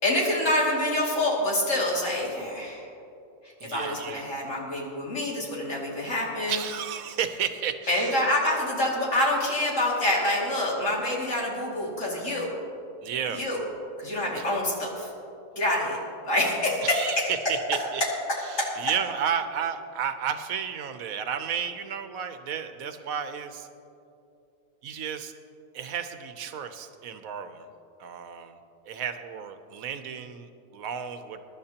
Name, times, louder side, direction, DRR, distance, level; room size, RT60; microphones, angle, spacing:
voice 1, 0.0-2.9 3.7-6.6 7.9-12.5 13.4-13.6 14.0-15.1 15.6-16.0 16.2-17.3 18.6-18.7, left 1 dB, 65° left, -4 dB, 2.8 m, -26 dB
voice 2, 3.6-4.2 6.5-8.1 13.0-13.5 14.4-14.5 16.8-18.0 18.4-23.7 24.8-25.3 25.7-27.7 28.0-28.6 28.9-31.4, right 8 dB, 85° right, 9 dB, 1.2 m, -32 dB
22.0 x 11.0 x 2.9 m, 2.7 s
omnidirectional pair, 1.4 m